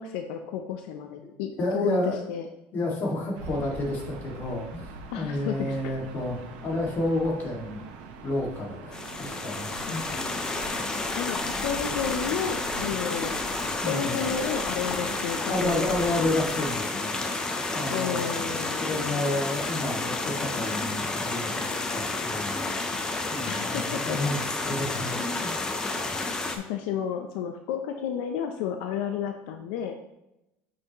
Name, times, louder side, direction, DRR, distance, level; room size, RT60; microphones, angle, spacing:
voice 1, 0.0-2.5 5.1-5.9 9.9-10.5 11.1-13.4 13.9-15.8 17.9-18.8 23.5-24.2 26.0-29.9, left 8 dB, 80° left, 5 dB, 0.6 m, -32 dB
voice 2, 1.6-2.2 2.7-6.4 6.6-7.8 8.2-10.0 13.8-14.2 15.5-17.1 17.7-18.3 18.8-22.7 23.3-25.5, left 2 dB, 40° left, -1 dB, 2.1 m, -30 dB
Gull seagull / Ocean, 3.3-16.7, right 3 dB, 80° right, 1.2 m, -43 dB
sound 1, 8.9-26.6, left 2 dB, 15° left, 0.7 m, -30 dB
8.1 x 6.1 x 3.0 m, 0.89 s
cardioid pair, 150°, 5 cm